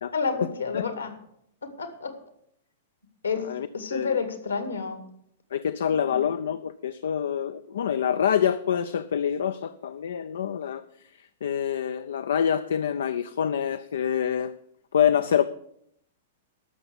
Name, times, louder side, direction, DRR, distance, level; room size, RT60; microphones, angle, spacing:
voice 1, 0.1-1.2 1.6-2.2 3.2-3.5 3.7-5.0 5.9-6.2, left 5 dB, 80° left, 8 dB, 2.2 m, -30 dB
voice 2, 3.5-4.2 5.5-10.8 11.4-14.5 14.9-15.4, left 8 dB, 65° left, 11 dB, 0.5 m, -26 dB
12.0 x 6.9 x 8.0 m, 0.71 s
figure-of-eight pair, 105°, 0 cm